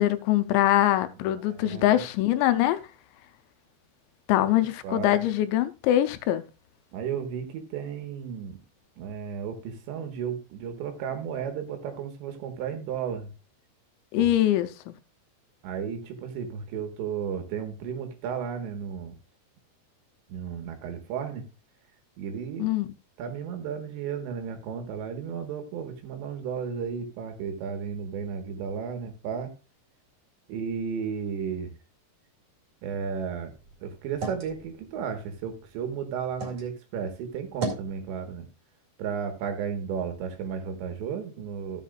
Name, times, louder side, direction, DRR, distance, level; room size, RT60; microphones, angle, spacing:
voice 1, 0.0-2.8 4.3-6.4 14.1-14.9 22.6-22.9, left 13 dB, 90° left, 3.0 m, -23 dB
voice 2, 1.2-2.0 4.4-5.2 6.9-8.6 9.0-13.3 14.2-14.3 15.6-19.2 20.3-21.5 22.2-22.7 23.2-29.5 30.5-31.7 32.8-33.5 33.8-38.5 39.0-41.8, right 7 dB, 90° right, 3.7 m, -34 dB
sound 1, 33.4-36.7 37.1-37.9, right 3 dB, 40° right, 3.0 m, -38 dB
14.5 x 7.4 x 2.4 m
omnidirectional pair, 5.0 m